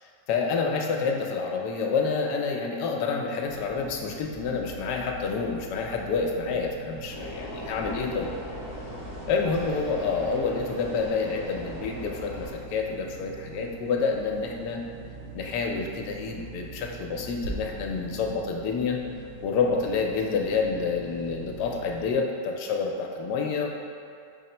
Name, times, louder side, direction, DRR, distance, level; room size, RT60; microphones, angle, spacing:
voice 1, 0.3-8.3 9.3-14.8 15.3-19.0 19.4-23.7, left 4 dB, 75° left, 1 dB, 1.1 m, -28 dB
sound 1, 3.4-22.1, right 4 dB, 70° right, 0.8 m, -43 dB
sound 2, 7.1-12.5, left 1 dB, 20° right, 0.6 m, -39 dB
4.2 x 2.9 x 4.3 m, 2.5 s
omnidirectional pair, 1.9 m